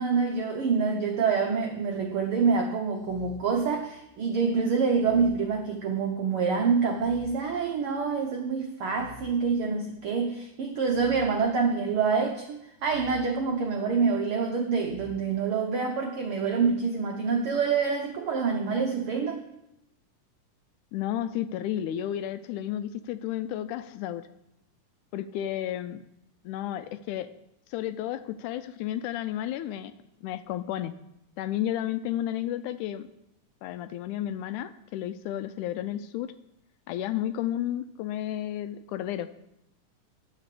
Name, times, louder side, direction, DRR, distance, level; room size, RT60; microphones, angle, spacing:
voice 1, 0.0-19.4, right 5 dB, 85° right, 3 dB, 1.2 m, -26 dB
sound 1, 1.9-2.3 3.0-4.2 4.9-6.2 6.9-8.2 8.9-10.2 10.8-12.1 12.8-14.1 14.8-15.1, equal, 35° right, 1.6 m, -50 dB
voice 2, 20.9-24.3 25.1-26.0 26.4-27.3 27.7-29.9 30.2-30.9 31.4-33.1 33.6-36.3 36.9-39.3, left 12 dB, 80° left, 12 dB, 1.9 m, -32 dB
10.5 x 6.9 x 6.7 m, 0.84 s
omnidirectional pair, 3.7 m